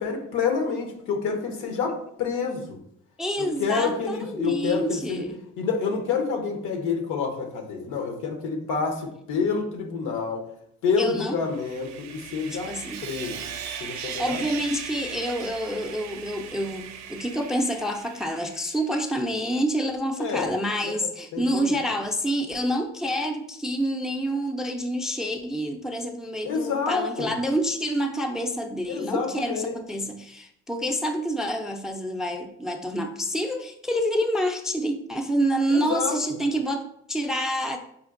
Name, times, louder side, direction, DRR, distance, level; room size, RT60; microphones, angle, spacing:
voice 1, 0.0-2.8 3.4-5.2 5.6-10.4 10.8-12.7 13.0-13.4 13.8-14.4 20.2-20.5 20.8-21.7 26.4-27.3 28.9-29.7 35.7-36.2, left 5 dB, 90° left, 4 dB, 0.8 m, -28 dB
voice 2, 3.2-5.4 11.0-11.4 12.5-13.0 13.9-37.8, equal, ahead, 4 dB, 0.3 m, -28 dB
Sawing, 11.4-18.9, right 8 dB, 65° right, 0.5 m, -38 dB
5.0 x 2.6 x 2.4 m, 0.73 s
cardioid pair, 90°, 30 cm